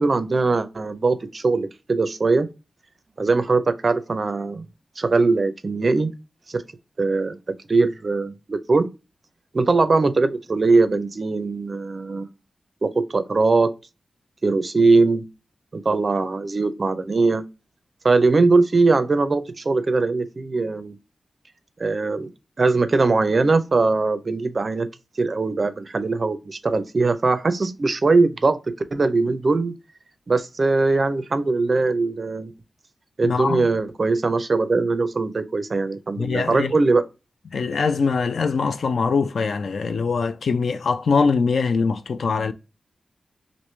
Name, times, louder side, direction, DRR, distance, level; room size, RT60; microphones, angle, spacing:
voice 1, 0.0-2.5 3.2-4.6 5.0-6.1 6.5-6.6 7.0-7.4 7.7-8.9 9.5-12.3 12.8-13.7 14.4-15.3 15.7-17.4 18.0-21.0 21.8-22.3 22.6-24.9 25.2-28.6 28.9-29.7 30.3-32.5 33.2-37.0, right 3 dB, 40° right, 0.4 m, -21 dB
voice 2, 33.2-33.6 36.2-36.7 37.5-42.5, left 5 dB, 70° left, 0.4 m, -22 dB
3.0 x 2.6 x 3.1 m
wide cardioid pair, 145°, 0 cm